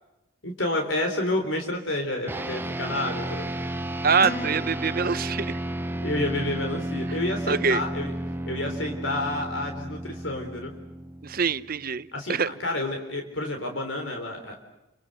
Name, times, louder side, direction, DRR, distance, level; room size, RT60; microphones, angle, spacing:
voice 1, 0.4-3.5 6.0-8.1 8.5-10.7 12.1-14.6, left 1 dB, 70° left, 4 dB, 3.8 m, -29 dB
sound 1, 2.3-11.9, right 1 dB, 10° right, 0.9 m, -33 dB
voice 2, 4.0-5.6 7.5-7.8 11.2-12.5, right 5 dB, 50° right, 15 dB, 0.9 m, -24 dB
sound 2, 4.2-5.7, left 2 dB, 50° left, 1.6 m, -38 dB
29.0 x 25.5 x 6.8 m, 0.98 s
head